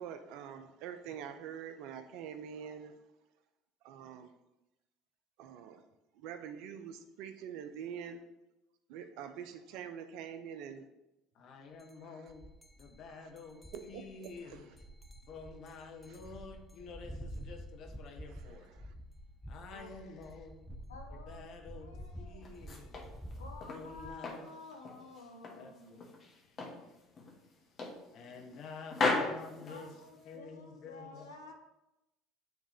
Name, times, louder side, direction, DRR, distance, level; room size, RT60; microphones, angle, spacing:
voice 1, 0.0-2.9 3.8-4.3 5.4-5.8 6.2-8.2 8.9-10.9 12.0-12.3 13.2-13.3 13.7-14.6 16.1-16.2 18.3-18.9, right 8 dB, 65° right, 9 dB, 0.6 m, -45 dB
voice 2, 11.3-12.5 12.8-14.7 15.3-18.7 19.5-20.6 21.1-22.9 23.7-24.5 25.5-26.1 26.8-27.3 28.1-31.3, left 4 dB, 55° left, 3 dB, 1.1 m, -49 dB
sound 1, 11.8-11.9 12.3-24.1, equal, ahead, 0.8 m, -49 dB
voice 3, 19.7-20.2 20.9-21.5 21.7-22.5 23.4-26.2 29.7-31.5, left 3 dB, 90° left, 2 dB, 0.9 m, -52 dB
sound 2, 22.4-23.9 24.2-25.6 26.0-26.8 27.2-27.3 27.8-28.6 28.9-30.3, left 3 dB, 40° left, 1.4 m, -36 dB
9.2 x 3.7 x 3.5 m, 0.94 s
hypercardioid pair, 65°, 0 cm